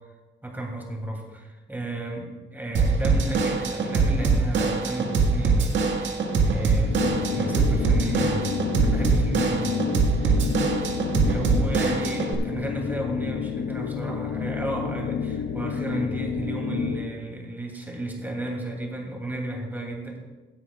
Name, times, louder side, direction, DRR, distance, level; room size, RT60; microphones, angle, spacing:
voice 1, 0.4-8.5 8.8-9.9 10.2-10.4 11.2-20.2, right 1 dB, 10° right, 0 dB, 2.8 m, -33 dB
Drum kit / Drum, 2.7-12.3, right 4 dB, 70° right, 1.7 m, -23 dB
sound 1, 6.8-17.2, left 7 dB, 70° left, 0.8 m, -30 dB
16.0 x 10.0 x 2.4 m, 1.2 s
cardioid pair, 90°, 20 cm